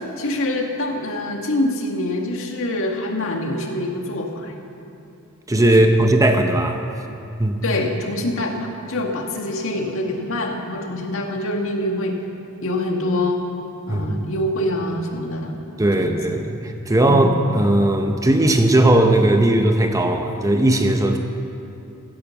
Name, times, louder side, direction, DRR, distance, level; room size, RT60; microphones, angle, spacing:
voice 1, 0.0-4.6 7.6-12.2 12.6-13.4 13.9-15.6 16.0-16.4 17.1-17.4, left 1 dB, 65° left, 2 dB, 1.8 m, -25 dB
voice 2, 5.5-6.9 7.4-7.6 13.9-14.3 15.8-21.2, right 1 dB, 15° right, 5 dB, 0.8 m, -17 dB
16.5 x 10.5 x 7.0 m, 2.7 s
head